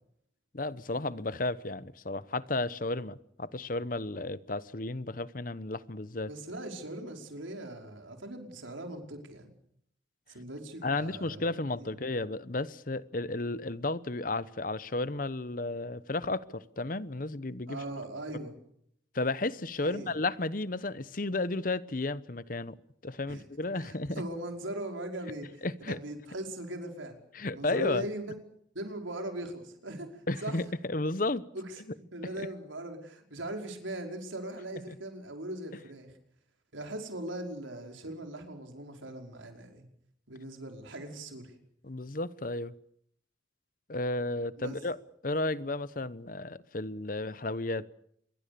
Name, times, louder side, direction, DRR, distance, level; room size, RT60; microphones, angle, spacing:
voice 1, 0.5-6.3 10.8-17.8 19.1-22.8 23.0-24.2 25.6-26.0 27.3-28.0 30.3-31.4 41.8-42.7 43.9-45.0 45.2-47.9, left 2 dB, 45° left, 0.9 m, -33 dB
voice 2, 6.3-9.5 10.3-11.4 11.7-12.0 17.7-18.5 19.8-20.1 23.3-23.4 23.7-27.2 27.5-28.3 28.7-30.6 31.5-36.1 36.7-39.8 40.3-41.5 44.6-44.8, right 1 dB, 90° right, 5.2 m, -40 dB
26.0 x 22.5 x 6.9 m
head